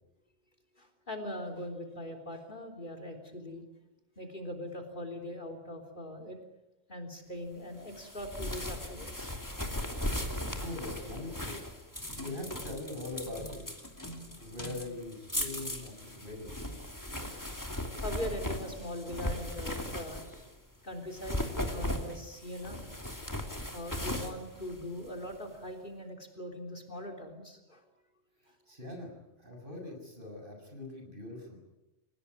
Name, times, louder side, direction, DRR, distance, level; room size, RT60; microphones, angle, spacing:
voice 1, 0.8-3.6 4.2-6.4 6.9-9.3 18.0-20.2 20.8-21.4 21.7-22.8 23.7-27.8, left 1 dB, 40° left, 6 dB, 3.7 m, -41 dB
sound 1, 7.9-20.5 21.1-25.4, left 1 dB, 15° left, 2.8 m, -38 dB
voice 2, 10.6-11.6 12.1-13.8 14.4-16.5 28.7-31.6, left 2 dB, 45° right, 3 dB, 7.2 m, -42 dB
29.0 x 18.0 x 9.7 m, 0.97 s
omnidirectional pair, 1.2 m